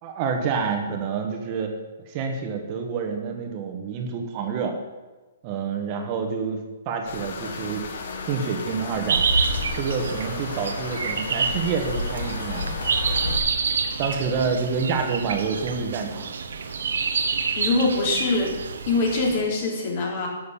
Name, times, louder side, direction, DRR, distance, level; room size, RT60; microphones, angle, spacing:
voice 1, 0.0-1.7 2.1-4.8 5.4-7.8 8.3-9.2 9.7-12.8 14.0-16.2, right 5 dB, 30° right, 3 dB, 1.4 m, -28 dB
sound 1, 7.0-13.4, left 3 dB, 60° left, 1.9 m, -32 dB
sound 2, 9.1-19.4, right 5 dB, 75° right, 1.3 m, -28 dB
voice 2, 17.6-18.5 18.9-20.3, left 3 dB, 40° left, -1 dB, 3.6 m, -23 dB
11.0 x 6.6 x 8.5 m, 1.2 s
hypercardioid pair, 155°, 0 cm